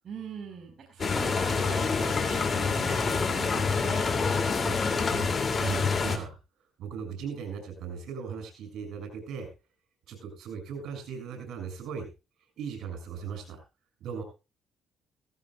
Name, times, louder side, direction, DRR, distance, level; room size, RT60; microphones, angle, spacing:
voice 1, 0.0-4.1, right 6 dB, 50° right, 1 dB, 4.3 m, -41 dB
sound 1, 1.0-6.2, left 4 dB, 40° left, 2.6 m, -27 dB
voice 2, 4.6-6.4 6.8-9.5 10.1-12.1 12.6-13.6 14.0-14.2, right 6 dB, 80° right, 5 dB, 6.8 m, -38 dB
17.5 x 15.0 x 2.4 m, 0.29 s
cardioid pair, 90°, 0 cm